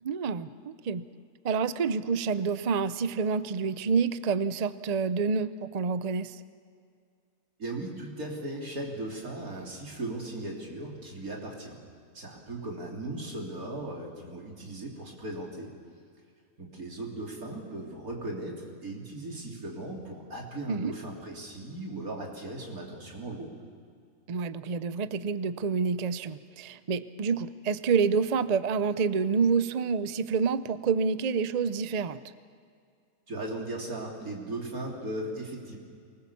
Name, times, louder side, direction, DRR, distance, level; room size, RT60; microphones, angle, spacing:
voice 1, 0.0-1.0 1.4-6.4 20.7-20.9 24.3-32.2, right 5 dB, 45° right, 13 dB, 0.5 m, -28 dB
voice 2, 7.6-11.8 12.1-15.7 16.6-23.5 33.3-35.8, right 2 dB, 85° right, -1 dB, 3.9 m, -37 dB
24.0 x 20.0 x 7.1 m, 2.2 s
omnidirectional pair, 1.5 m